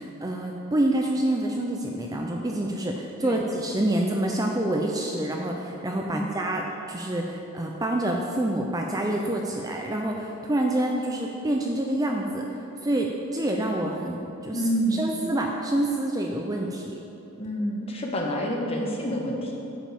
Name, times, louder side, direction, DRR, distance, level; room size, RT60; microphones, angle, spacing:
voice 1, 0.0-12.6 12.8-14.6 14.9-17.0, right 1 dB, 15° right, 0 dB, 0.5 m, -27 dB
voice 2, 14.5-15.1 17.4-19.6, equal, 25° left, -1 dB, 1.0 m, -28 dB
8.8 x 5.2 x 6.8 m, 2.8 s
head